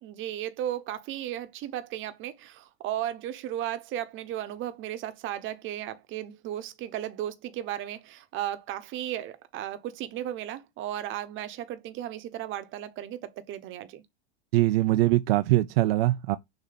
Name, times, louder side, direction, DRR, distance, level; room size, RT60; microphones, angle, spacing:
voice 1, 0.0-14.0, right 12 dB, 40° right, 1.1 m, -35 dB
voice 2, 14.5-16.4, right 16 dB, 65° right, 0.6 m, -22 dB
6.7 x 3.0 x 5.9 m
hypercardioid pair, 115°, 31 cm